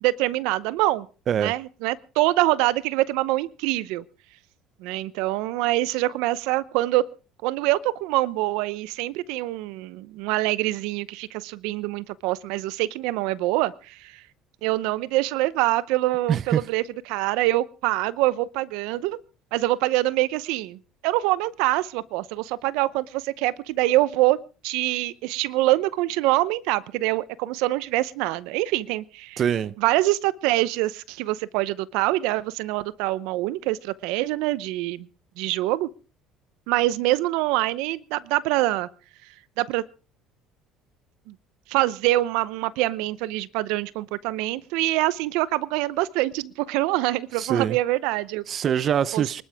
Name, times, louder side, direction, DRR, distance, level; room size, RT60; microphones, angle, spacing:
voice 1, 0.0-1.1 1.4-4.0 4.8-7.0 7.4-14.2 14.6-19.2 19.5-20.8 21.0-24.4 24.6-29.4 29.8-35.1 35.4-35.9 36.7-38.9 39.6-39.8 41.3-41.4 41.7-48.4 49.1-49.4, right 17 dB, 80° right, 0.7 m, -25 dB
voice 2, 16.3-16.6 29.4-29.7 47.4-47.8 48.5-49.4, right 8 dB, 45° right, 0.7 m, -24 dB
25.5 x 12.0 x 3.5 m
supercardioid pair, 100°, 0 cm